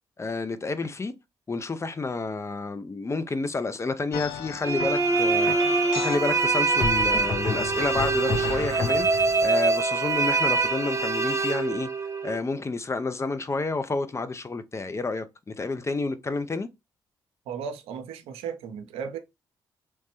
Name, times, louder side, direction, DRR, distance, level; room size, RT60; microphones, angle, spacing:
voice 1, 0.2-1.1 1.5-11.9 12.2-16.7, left 3 dB, 30° left, 0.5 m, -30 dB
sound 1, 4.1-9.5, left 8 dB, 85° left, 0.4 m, -38 dB
sound 2, 4.1-4.6 6.8-9.4, left 3 dB, 60° left, 1.1 m, -31 dB
sound 3, 4.6-12.4, right 3 dB, 30° right, 0.8 m, -24 dB
voice 2, 17.5-19.2, right 7 dB, 80° right, 0.5 m, -35 dB
3.1 x 2.1 x 3.0 m
hypercardioid pair, 45°, 10 cm